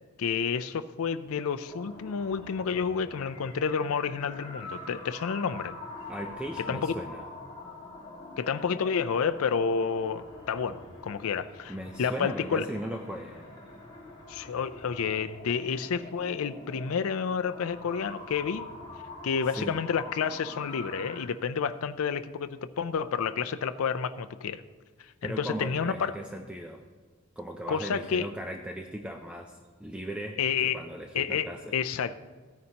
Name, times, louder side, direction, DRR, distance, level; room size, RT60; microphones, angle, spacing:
voice 1, 0.2-5.7 6.6-6.9 8.4-12.7 14.3-18.7 19.2-24.6 25.2-26.1 27.7-28.3 30.4-30.8 31.1-32.1, left 6 dB, 75° left, 10 dB, 0.4 m, -30 dB
sound 1, 1.6-21.2, left 2 dB, 20° left, 2.0 m, -45 dB
voice 2, 6.1-7.3 11.7-13.5 19.6-19.8 25.2-26.8 27.4-31.8, equal, 5° right, 3 dB, 0.4 m, -38 dB
16.0 x 9.5 x 2.9 m, 1.5 s
head